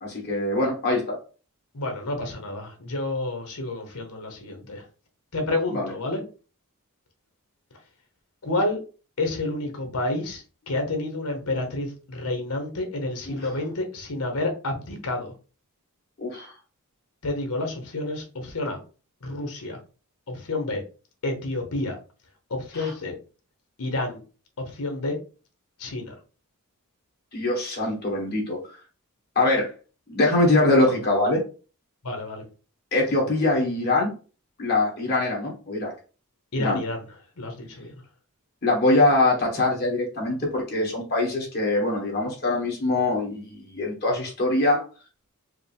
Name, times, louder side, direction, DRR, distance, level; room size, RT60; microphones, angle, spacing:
voice 1, 0.0-1.2 5.7-5.9 13.3-13.4 16.2-16.5 22.7-22.9 27.3-28.6 29.4-29.7 30.1-31.4 32.9-34.1 34.6-35.9 36.6-36.8 38.6-44.8, left 2 dB, 45° left, -2 dB, 1.8 m, -23 dB
voice 2, 1.7-4.8 5.3-6.2 8.4-8.8 9.2-15.3 17.2-18.8 19.2-19.8 20.3-20.8 21.2-22.0 22.5-23.1 23.8-24.2 24.6-25.2 25.8-26.1 32.0-32.4 36.5-37.0 37.4-38.0, left 2 dB, 80° left, 4 dB, 1.0 m, -29 dB
4.9 x 2.1 x 3.4 m, 0.36 s
head